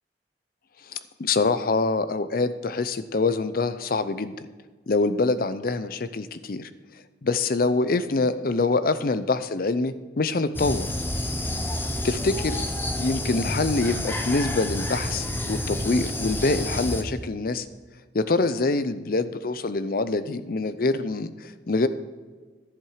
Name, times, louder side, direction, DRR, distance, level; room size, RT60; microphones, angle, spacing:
voice 1, 0.8-4.3 4.9-6.7 7.2-10.9 12.0-12.6 13.0-17.7 18.1-21.9, left 3 dB, 50° left, 13 dB, 0.5 m, -25 dB
sound 1, 10.5-17.0, left 1 dB, 10° left, 0.7 m, -29 dB
11.0 x 7.6 x 4.9 m, 1.4 s
head